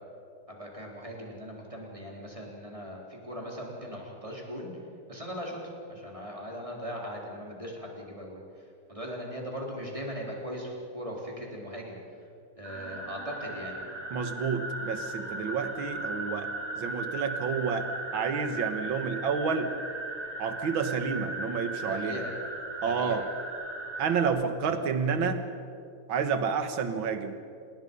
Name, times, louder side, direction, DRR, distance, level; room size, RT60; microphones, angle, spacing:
voice 1, 0.5-4.7 5.1-8.4 8.9-12.0 12.6-13.8 21.9-22.3 22.9-23.2, equal, 15° right, -1 dB, 4.0 m, -39 dB
sound 1, 12.6-24.3, right 2 dB, 35° right, 6.5 m, -37 dB
voice 2, 14.1-19.7 20.4-22.2 22.8-23.3 24.0-25.4 26.1-27.4, right 6 dB, 65° right, 8 dB, 2.2 m, -30 dB
27.5 x 20.0 x 5.5 m, 2.4 s
omnidirectional pair, 2.4 m